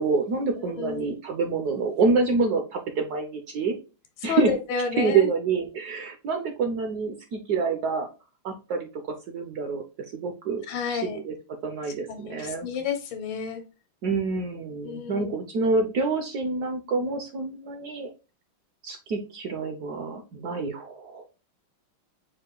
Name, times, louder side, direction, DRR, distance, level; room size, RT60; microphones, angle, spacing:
voice 1, 0.0-3.7 4.2-4.5 5.0-8.1 8.4-9.8 10.1-11.3 11.6-12.7 14.0-18.1 18.8-21.2, right 4 dB, 70° right, 5 dB, 0.9 m, -27 dB
voice 2, 0.6-1.1 4.2-5.3 10.7-11.2 12.1-13.6 14.8-15.4, left 6 dB, 85° left, 6 dB, 1.6 m, -30 dB
4.7 x 2.4 x 3.7 m, 0.32 s
omnidirectional pair, 2.2 m